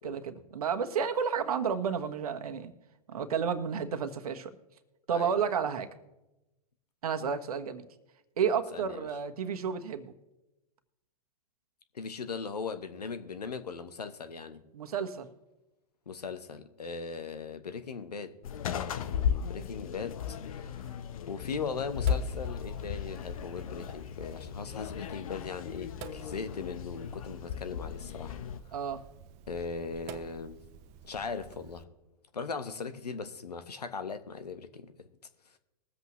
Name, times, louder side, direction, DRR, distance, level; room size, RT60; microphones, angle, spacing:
voice 1, 0.0-2.7 3.1-4.5 5.1-5.9 7.0-7.9 8.4-10.1 14.7-15.3 28.7-29.0, right 7 dB, 65° right, 1.3 m, -31 dB
voice 2, 5.1-5.5 8.7-9.1 11.9-14.6 16.1-18.4 18.8-28.4 28.6-28.7 29.5-30.6 31.0-31.9 32.3-34.9, left 5 dB, 80° left, 1.2 m, -39 dB
sound 1, 18.4-28.6, left 8 dB, 60° left, 0.9 m, -36 dB
Sink (filling or washing), 21.9-31.8, right 8 dB, 35° right, 0.7 m, -51 dB
21.0 x 7.9 x 3.1 m
hypercardioid pair, 110°, 20 cm